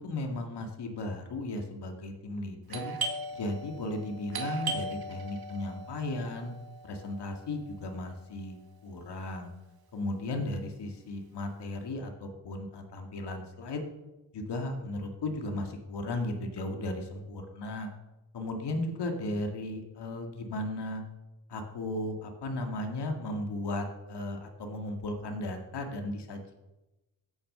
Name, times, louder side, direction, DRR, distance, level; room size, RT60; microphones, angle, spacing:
voice 1, 0.0-2.9 3.3-6.5 6.8-8.6 8.8-9.5 9.9-13.8 14.3-17.9 18.3-21.0 21.5-26.5, left 2 dB, 80° left, 4 dB, 2.2 m, -35 dB
Doorbell, 2.7-8.1, right 3 dB, 65° right, 1.9 m, -38 dB
16.5 x 8.7 x 6.7 m, 1.0 s
cardioid pair, 90°, 40 cm